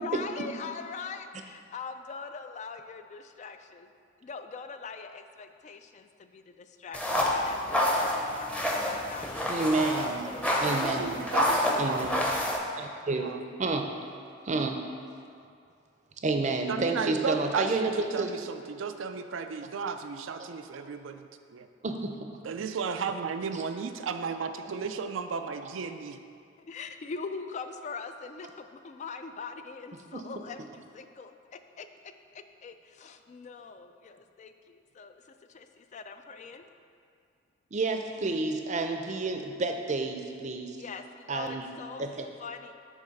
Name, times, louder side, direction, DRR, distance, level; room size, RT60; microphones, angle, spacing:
voice 1, 0.0-3.9 4.2-8.1 8.4-8.8 9.1-9.9 10.3-10.8 26.7-31.9 32.3-35.2 35.5-36.7 40.8-42.0 42.4-42.7, left 5 dB, 40° left, 8 dB, 0.3 m, -42 dB
sound 1, 6.9-12.6, left 1 dB, 5° left, 0.7 m, -28 dB
voice 2, 9.5-10.3 10.6-11.1 11.8-12.2 12.8-13.3 13.6-13.9 14.4-14.8 16.2-18.3 21.8-22.3 23.5-23.6 30.1-30.2 37.7-40.8 41.3-41.7 42.0-42.3, right 3 dB, 40° right, 5 dB, 0.5 m, -30 dB
voice 3, 10.7-12.1 13.2-13.4 16.7-21.7 22.4-26.2, right 5 dB, 85° right, 8 dB, 0.4 m, -34 dB
8.5 x 3.1 x 6.4 m, 2.3 s
head